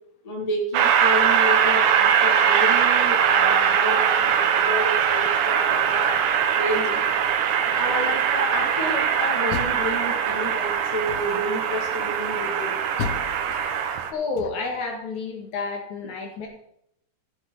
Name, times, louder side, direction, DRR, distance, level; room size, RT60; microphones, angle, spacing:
voice 1, 0.2-6.2 6.6-7.0 7.7-12.7, equal, 15° left, -1 dB, 1.6 m, -30 dB
Train, 0.7-14.1, right 8 dB, 70° right, 2.2 m, -21 dB
Door, 9.2-10.5 11.0-11.6 13.0-14.9, left 8 dB, 90° left, 2.6 m, -35 dB
voice 2, 14.1-16.5, left 4 dB, 60° left, 1 dB, 2.8 m, -30 dB
13.5 x 8.1 x 4.1 m, 0.73 s
omnidirectional pair, 4.2 m